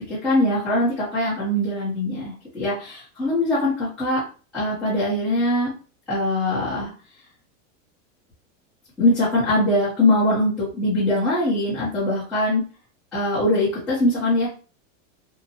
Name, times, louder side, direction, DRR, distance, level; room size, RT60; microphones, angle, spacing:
voice 1, 0.1-4.2 4.5-5.7 6.1-6.9 9.0-12.6 13.1-14.5, left 1 dB, ahead, -13 dB, 0.6 m, -22 dB
2.7 x 2.0 x 2.7 m, 0.36 s
supercardioid pair, 175°, 40 cm